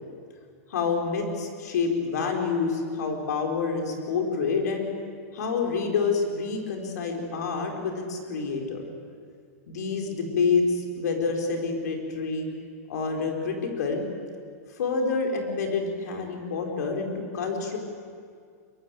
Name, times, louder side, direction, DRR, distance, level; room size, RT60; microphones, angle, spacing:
voice 1, 0.7-4.9 5.3-8.9 9.7-12.5 12.9-14.0 14.8-17.8, left 4 dB, 80° left, 2 dB, 5.1 m, -27 dB
23.5 x 23.0 x 8.0 m, 2.1 s
hypercardioid pair, 130°, 9 cm